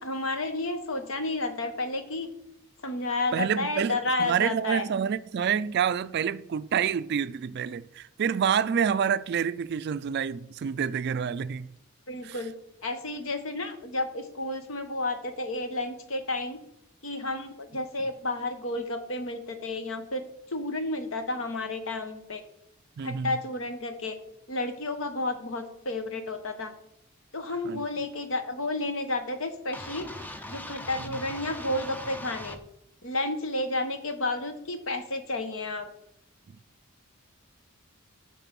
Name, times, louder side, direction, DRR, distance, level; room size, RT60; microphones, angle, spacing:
voice 1, 0.0-2.3 2.8-4.8 12.1-12.5 12.8-16.6 17.0-20.2 20.5-22.4 23.0-24.2 24.5-26.7 27.3-30.1 30.5-32.6 33.0-35.9, left 2 dB, 65° left, 1.1 m, -31 dB
voice 2, 3.3-11.7 12.2-12.5 23.0-23.4 27.6-27.8 31.0-31.2, right 7 dB, 50° right, 0.3 m, -28 dB
sound 1, 29.7-32.6, left 1 dB, 10° left, 0.5 m, -40 dB
6.9 x 6.0 x 5.9 m
head